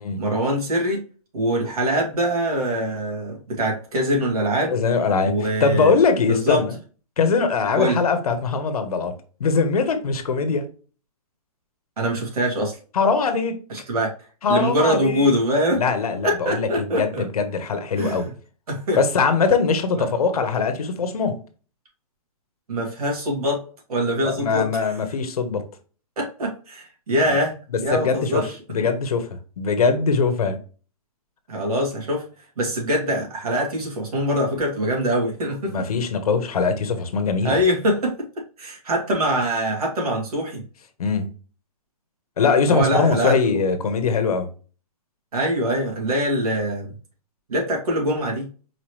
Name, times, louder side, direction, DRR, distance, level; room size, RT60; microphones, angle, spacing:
voice 1, 0.2-1.0 1.3-4.7 5.2-6.0 6.3-6.6 7.8-8.0 12.0-12.8 13.7-14.1 14.5-15.8 16.2-17.3 18.0-18.3 18.7-19.0 20.0-20.1 22.7-23.6 23.9-24.9 26.2-28.6 31.5-32.3 32.6-35.7 37.4-38.3 38.6-40.6 42.7-43.6 45.3-46.9 47.5-48.5, equal, 80° right, 2.4 m, -23 dB
voice 2, 4.7-6.7 7.2-9.1 9.4-10.6 12.9-13.6 14.4-15.3 15.7-18.3 19.0-21.4 24.2-25.6 27.7-28.4 28.7-29.3 29.6-30.6 35.7-37.6 41.0-41.3 42.4-44.5, left 5 dB, 75° left, 1.1 m, -21 dB
4.7 x 3.1 x 3.1 m
hypercardioid pair, 170°, 19 cm